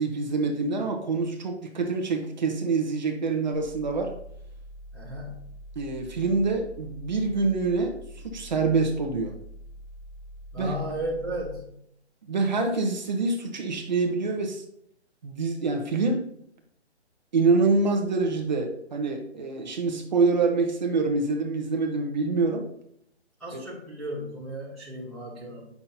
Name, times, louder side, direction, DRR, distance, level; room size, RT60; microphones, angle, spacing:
voice 1, 0.0-4.1 5.7-9.3 10.6-10.7 12.2-14.6 15.2-16.2 17.3-22.7 23.5-23.6, right 3 dB, 40° right, 2 dB, 1.1 m, -26 dB
sound 1, 3.5-11.5, equal, 60° left, 2.3 m, -45 dB
voice 2, 4.9-5.5 10.5-11.8 23.4-25.7, equal, ahead, -16 dB, 0.9 m, -34 dB
9.5 x 6.0 x 2.7 m, 0.72 s
hypercardioid pair, 170°, 34 cm